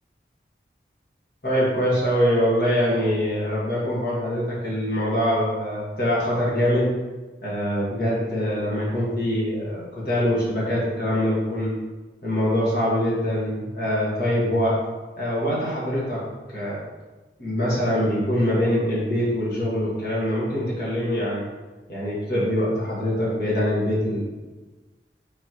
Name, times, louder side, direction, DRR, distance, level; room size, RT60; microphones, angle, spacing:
voice 1, 1.4-6.9 7.4-11.7 12.2-14.8 15.2-16.2 16.5-16.8 17.4-21.4 21.9-24.2, equal, 55° left, -6 dB, 1.5 m, -24 dB
4.0 x 3.8 x 3.0 m, 1.2 s
head